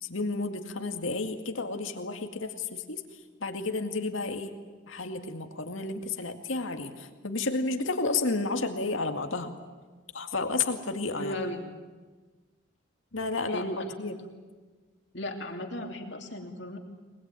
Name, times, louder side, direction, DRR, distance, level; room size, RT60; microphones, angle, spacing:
voice 1, 0.0-3.0 3.4-4.5 4.9-9.5 10.1-11.3 13.1-13.6 14.0-14.2, left 3 dB, 80° left, 6 dB, 2.2 m, -31 dB
voice 2, 11.2-11.6 13.5-14.3 15.1-16.8, left 1 dB, 60° left, 2 dB, 2.9 m, -36 dB
23.5 x 20.5 x 9.2 m, 1.3 s
head